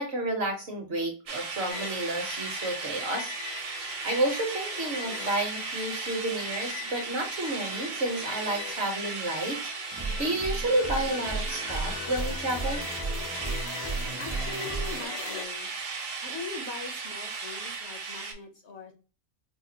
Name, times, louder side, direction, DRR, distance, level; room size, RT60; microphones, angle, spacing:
voice 1, 0.0-3.8 4.0-12.9, right 1 dB, 55° right, 3 dB, 1.0 m, -31 dB
sound 1, 1.3-18.3, right 4 dB, 70° right, 1.2 m, -36 dB
sound 2, 1.7-15.5, left 9 dB, 85° left, 1.0 m, -42 dB
sound 3, 9.9-15.0, right 3 dB, 25° right, 0.3 m, -34 dB
voice 2, 14.2-15.7 16.2-18.9, left 3 dB, 55° left, 4 dB, 0.9 m, -41 dB
4.9 x 2.3 x 2.7 m, 0.33 s
omnidirectional pair, 1.5 m